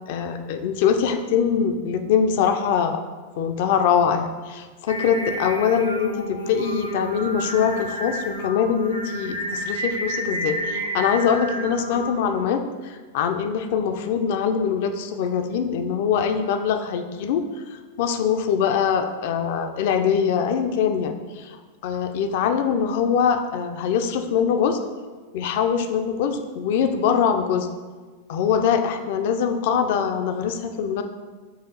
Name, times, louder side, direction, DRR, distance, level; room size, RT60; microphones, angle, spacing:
voice 1, 0.1-3.0 3.4-24.8 25.3-27.7 28.3-31.0, left 7 dB, 50° left, 7 dB, 0.4 m, -23 dB
Singing, 4.9-12.5, right 1 dB, 80° right, 0.5 m, -30 dB
4.6 x 2.4 x 4.5 m, 1.4 s
figure-of-eight pair, 90°, 0 cm